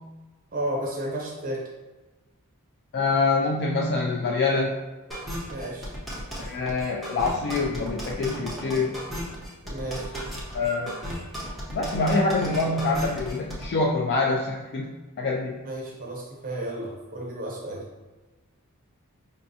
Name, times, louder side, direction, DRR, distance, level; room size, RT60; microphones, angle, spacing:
voice 1, 0.5-1.6 5.5-5.9 9.6-10.1 15.6-17.8, right 1 dB, 40° right, -2 dB, 0.9 m, -32 dB
voice 2, 2.9-4.8 6.4-9.0 10.5-10.9 11.7-15.6, left 3 dB, 50° left, -1 dB, 0.3 m, -25 dB
sound 1, 5.1-13.7, equal, ahead, 0.8 m, -35 dB
5.1 x 2.3 x 2.7 m, 1.2 s
head